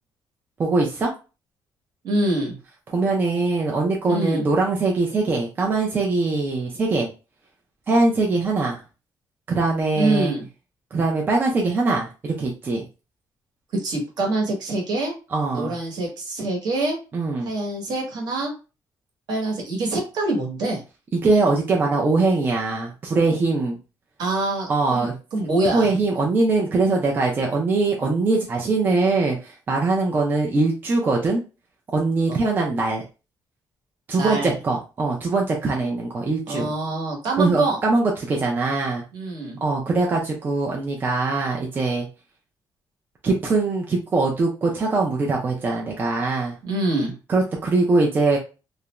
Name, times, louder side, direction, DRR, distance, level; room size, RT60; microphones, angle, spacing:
voice 1, 0.6-1.1 2.9-7.1 7.9-8.8 9.5-10.3 10.9-12.8 15.3-15.8 17.1-17.5 21.1-23.8 24.7-25.1 25.7-31.4 31.9-33.0 34.1-36.7 37.4-39.0 39.6-42.1 43.2-46.6 47.3-48.4, right 3 dB, 25° right, -1 dB, 0.4 m, -22 dB
voice 2, 2.0-2.6 4.1-4.4 10.0-10.5 13.7-15.1 15.5-17.0 17.4-18.5 19.3-20.8 24.2-25.1 25.3-25.9 32.3-32.4 34.2-34.5 36.5-37.8 39.1-39.6 46.6-47.1, right 2 dB, 60° right, 0 dB, 1.0 m, -25 dB
2.4 x 2.1 x 2.9 m, 0.32 s
cardioid pair, 180°, 8 cm